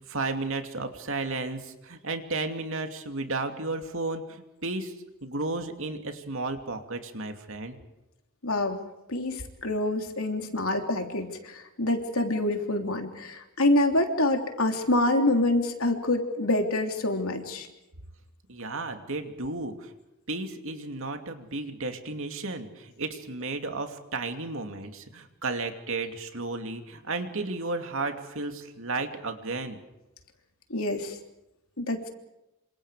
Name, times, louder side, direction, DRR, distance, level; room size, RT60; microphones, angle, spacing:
voice 1, 0.0-4.9 5.2-7.8 18.5-19.9 20.3-29.8, right 3 dB, 65° right, 5 dB, 2.7 m, -33 dB
voice 2, 8.4-8.8 9.1-17.7 30.7-31.2 31.8-32.1, left 1 dB, 70° left, 4 dB, 3.3 m, -26 dB
27.5 x 26.5 x 5.1 m, 0.95 s
head